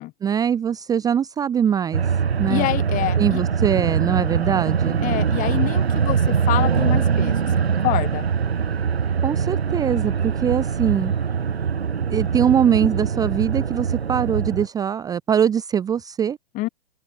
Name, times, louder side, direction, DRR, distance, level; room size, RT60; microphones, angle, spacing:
voice 1, 0.2-2.0 2.4-2.7 3.2-5.0 9.2-11.1 12.1-16.4, right 8 dB, 10° right, 0.9 m, -22 dB
sound 1, 1.9-14.7, right 7 dB, 85° right, 0.6 m, -22 dB
voice 2, 2.5-3.4 5.0-8.3 16.5-16.7, left 18 dB, 25° left, 2.1 m, -26 dB
open air
figure-of-eight pair, 115°, 31 cm